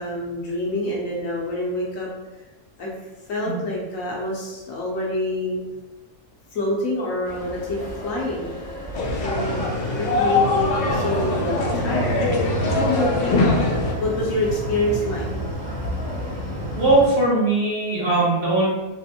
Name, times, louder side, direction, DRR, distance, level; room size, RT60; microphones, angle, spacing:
voice 1, 0.0-2.1 2.8-2.9 3.3-5.6 6.5-8.6 9.2-9.7 10.0-12.2 12.7-13.5 14.0-15.2, left 1 dB, 65° left, -3 dB, 1.0 m, -26 dB
sound 1, 7.2-17.1, equal, 35° left, 0.8 m, -33 dB
sound 2, 8.9-13.9, left 2 dB, 85° left, 0.5 m, -22 dB
sound 3, 10.9-15.5, right 1 dB, 85° right, 1.4 m, -32 dB
voice 2, 16.8-18.7, right 2 dB, 45° right, -7 dB, 1.0 m, -20 dB
3.3 x 2.5 x 2.7 m, 1.1 s
omnidirectional pair, 1.6 m